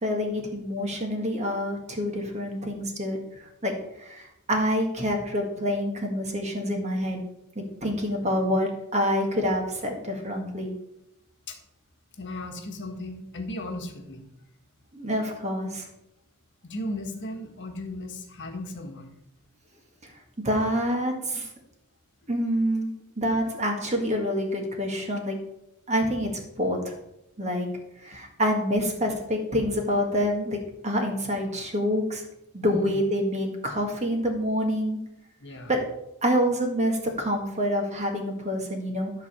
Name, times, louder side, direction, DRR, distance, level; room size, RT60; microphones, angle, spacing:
voice 1, 0.0-3.2 3.6-7.2 7.8-10.7 14.9-15.9 20.4-21.5 22.3-22.9 23.2-25.4 25.9-26.3 26.6-26.9 27.4-27.7 28.0-32.2 32.5-35.0 35.7-35.8 36.2-39.1, equal, 30° right, 2 dB, 1.8 m, -27 dB
voice 2, 12.2-14.3 16.6-19.1 28.7-28.8 32.6-33.0 35.4-35.7, left 1 dB, 55° left, 4 dB, 1.4 m, -36 dB
12.0 x 4.1 x 6.8 m, 0.84 s
head